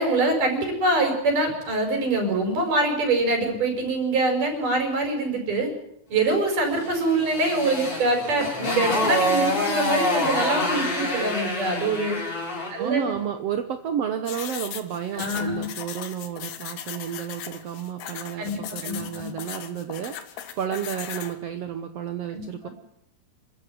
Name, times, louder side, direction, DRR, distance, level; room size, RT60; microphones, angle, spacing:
voice 1, 0.0-5.7 6.1-12.2 12.7-13.2 15.1-15.7 18.4-19.3 22.3-22.4, right 2 dB, 55° right, 4 dB, 6.6 m, -24 dB
Motorcycle, 6.8-12.8, left 1 dB, 35° left, 6.7 m, -26 dB
voice 2, 12.8-22.7, right 9 dB, 75° right, 8 dB, 1.4 m, -31 dB
sound 1, 14.3-21.3, left 10 dB, 80° left, 3.5 m, -38 dB
27.0 x 15.0 x 9.5 m, 0.75 s
omnidirectional pair, 4.4 m